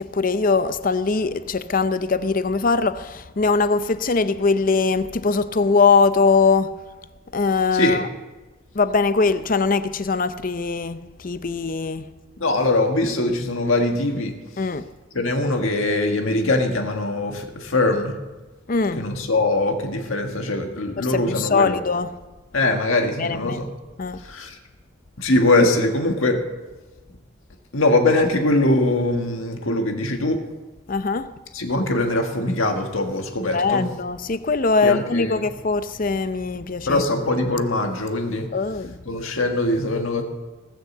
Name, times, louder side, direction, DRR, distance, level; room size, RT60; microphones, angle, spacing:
voice 1, 0.0-6.8 7.3-8.1 8.7-12.0 14.6-14.8 18.7-19.0 21.0-22.1 23.2-23.6 24.0-24.2 30.9-31.3 33.5-37.0 38.5-39.0, left 4 dB, 40° left, 0.6 m, -21 dB
voice 2, 7.7-8.0 12.4-14.3 15.1-18.1 19.0-21.8 22.5-23.7 24.2-24.6 25.2-26.4 27.7-30.4 31.5-33.9 34.8-35.4 36.9-38.5 39.0-40.2, left 2 dB, 90° left, 1.7 m, -22 dB
19.5 x 6.7 x 7.3 m
head